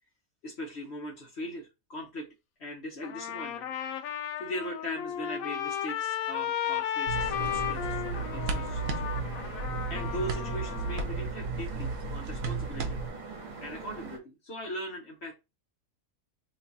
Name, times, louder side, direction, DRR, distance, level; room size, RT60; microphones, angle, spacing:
voice 1, 0.4-2.3 2.6-3.7 4.0-8.9 9.4-9.6 9.9-13.0 13.6-15.3, equal, 60° left, -1 dB, 1.0 m, -40 dB
Trumpet, 3.0-11.1, left 10 dB, 85° left, 1.0 m, -34 dB
sound 1, 7.1-14.2, right 3 dB, 65° right, 1.3 m, -42 dB
sound 2, 7.1-13.1, right 4 dB, 90° right, 1.1 m, -34 dB
3.0 x 2.3 x 3.9 m, 0.25 s
omnidirectional pair, 1.4 m